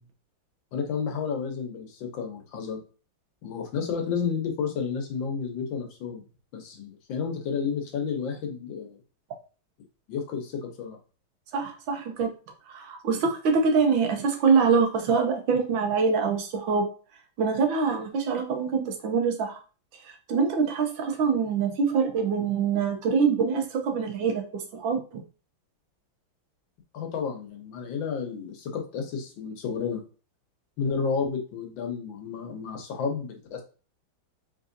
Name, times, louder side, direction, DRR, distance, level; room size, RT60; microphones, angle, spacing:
voice 1, 0.7-2.8 3.4-6.2 6.5-9.0 10.1-11.0 26.9-30.0 30.8-33.6, left 6 dB, 75° left, 3 dB, 1.6 m, -31 dB
voice 2, 11.5-12.3 12.7-16.9 17.4-19.6 20.0-25.0, right 5 dB, 75° right, 4 dB, 1.5 m, -24 dB
3.9 x 3.6 x 2.6 m, 0.36 s
omnidirectional pair, 2.2 m